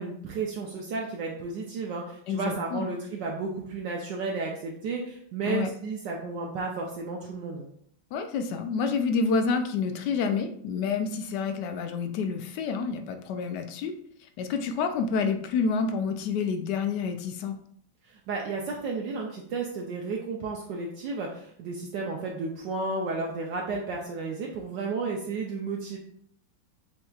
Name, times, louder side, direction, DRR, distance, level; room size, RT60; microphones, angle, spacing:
voice 1, 0.0-7.7 18.0-26.0, right 4 dB, 70° right, -1 dB, 1.2 m, -33 dB
voice 2, 2.3-2.9 5.4-5.7 8.1-13.9 14.4-17.6, left 5 dB, 75° left, 7 dB, 1.0 m, -28 dB
7.6 x 2.8 x 2.3 m, 0.64 s
omnidirectional pair, 2.1 m